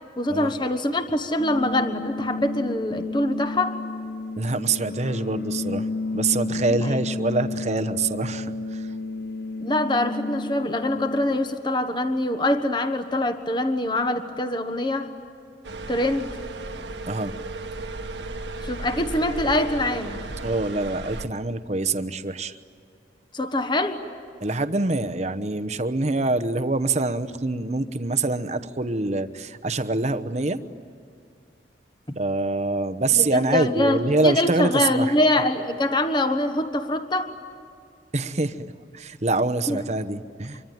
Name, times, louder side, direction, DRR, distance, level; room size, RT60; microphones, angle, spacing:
voice 1, 0.2-3.8 6.7-7.0 9.6-15.1 15.9-16.3 18.6-20.2 23.3-24.0 33.1-37.3 39.7-39.8, left 1 dB, 25° left, 8 dB, 1.4 m, -24 dB
sound 1, 1.4-11.4, left 2 dB, 65° left, 1.8 m, -31 dB
voice 2, 4.4-5.9 6.1-8.9 17.1-17.3 20.4-22.6 24.4-30.6 32.2-35.1 38.1-40.6, right 3 dB, 40° right, 11 dB, 1.0 m, -25 dB
sound 2, 15.6-21.3, right 2 dB, 85° right, 1.7 m, -35 dB
26.5 x 24.0 x 9.3 m, 2.4 s
head